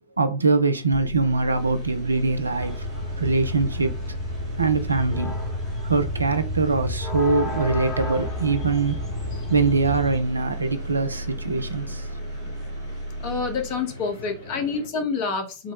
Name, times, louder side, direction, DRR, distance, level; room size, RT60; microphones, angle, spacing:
voice 1, 0.2-2.9 3.2-3.9 4.6-5.4 5.8-9.0 9.5-12.1, right 3 dB, 80° right, 0.4 m, -23 dB
sound 1, 0.9-14.0 14.4-14.6, right 1 dB, 30° right, 1.0 m, -34 dB
sound 2, 1.2-14.9, left 1 dB, 70° left, 1.2 m, -43 dB
sound 3, 2.6-10.2, left 2 dB, 20° left, 1.0 m, -32 dB
voice 2, 13.2-15.7, left 4 dB, 45° left, 0.7 m, -27 dB
3.4 x 2.0 x 3.4 m
figure-of-eight pair, 90°, 0 cm